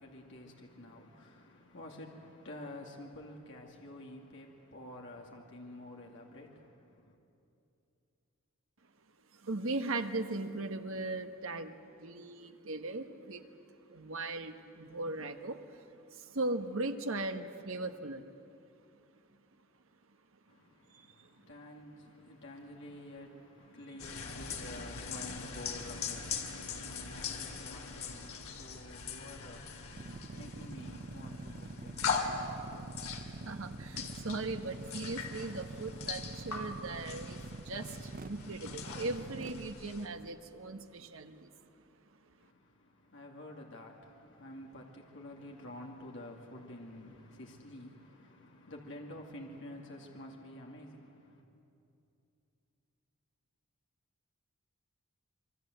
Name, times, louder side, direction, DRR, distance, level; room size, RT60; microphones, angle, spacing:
voice 1, 0.0-7.2 20.5-32.9 42.4-51.4, left 1 dB, 55° left, 2.5 m, -50 dB
voice 2, 9.3-13.4 13.9-15.8 16.1-18.3 20.9-21.3 33.4-41.5, right 2 dB, 65° right, 1.3 m, -38 dB
sound 1, 24.0-40.1, left 5 dB, 80° left, 2.5 m, -41 dB
sound 2, 29.9-39.7, right 2 dB, 40° right, 0.6 m, -45 dB
26.5 x 23.5 x 8.0 m
head